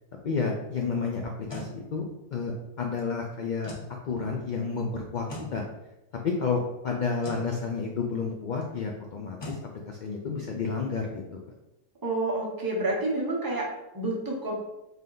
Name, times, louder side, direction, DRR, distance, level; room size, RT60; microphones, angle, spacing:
voice 1, 0.2-1.2 1.5-2.0 2.3-3.7 4.1-5.2 5.5-5.6 6.2-9.6 9.9-11.4, left 5 dB, 90° left, 0 dB, 0.4 m, -30 dB
sound 1, 1.2-1.7 3.6-3.9 5.3-5.5 7.2-7.5 9.4-9.6, left 1 dB, 30° left, 0.6 m, -38 dB
voice 2, 12.0-14.5, right 2 dB, 20° right, -2 dB, 0.6 m, -29 dB
3.4 x 2.8 x 3.8 m, 0.92 s
omnidirectional pair, 1.4 m